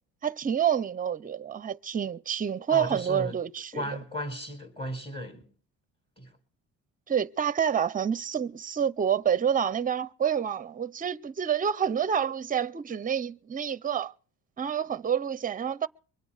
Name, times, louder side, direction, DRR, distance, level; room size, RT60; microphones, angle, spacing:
voice 1, 0.2-3.8 7.1-14.1 14.6-15.9, right 8 dB, 25° right, 0.7 m, -28 dB
voice 2, 2.7-3.4 3.7-5.4 6.2-6.3, equal, 15° left, 4.3 m, -35 dB
24.0 x 8.4 x 5.0 m
cardioid pair, 120°, 36 cm